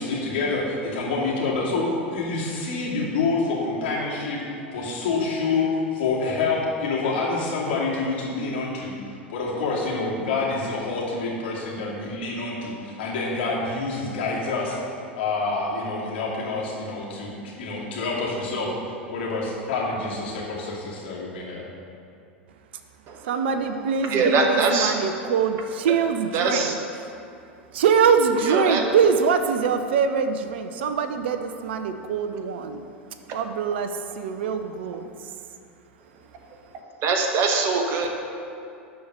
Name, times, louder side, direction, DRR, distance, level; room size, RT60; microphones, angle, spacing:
voice 1, 0.0-4.4 4.7-14.8 15.2-18.7 19.1-21.6, left 3 dB, 60° left, -5 dB, 2.6 m, -27 dB
voice 2, 23.2-26.7 27.7-32.8 33.3-35.3, right 6 dB, 60° right, 8 dB, 0.6 m, -23 dB
voice 3, 24.0-24.9 26.3-26.7 28.4-28.8 33.3-33.4 37.0-38.1, right 4 dB, 40° right, 3 dB, 1.2 m, -22 dB
12.0 x 4.5 x 6.8 m, 2.5 s
figure-of-eight pair, 85°, 7 cm